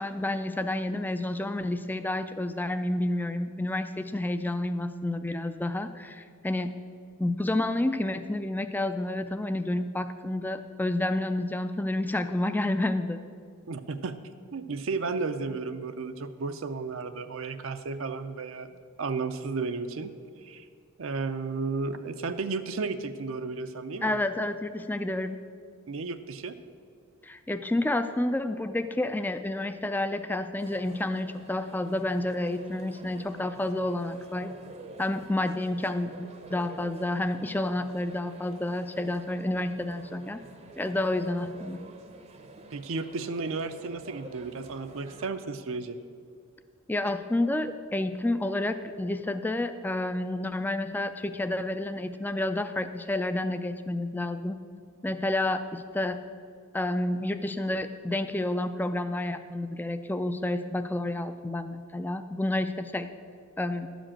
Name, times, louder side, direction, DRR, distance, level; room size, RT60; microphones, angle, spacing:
voice 1, 0.0-6.8 7.2-13.2 24.0-25.5 27.2-34.5 35.0-40.4 40.8-41.9 46.9-54.6 55.0-56.2 56.7-63.1 63.6-63.9, left 1 dB, 10° left, 9 dB, 0.3 m, -30 dB
voice 2, 13.7-14.1 14.5-20.1 20.4-20.7 21.0-24.2 25.9-26.5 42.7-46.0, right 4 dB, 65° right, 8 dB, 0.5 m, -33 dB
sound 1, 30.6-45.3, right 2 dB, 30° right, 0.6 m, -48 dB
12.0 x 5.1 x 8.7 m, 2.2 s
head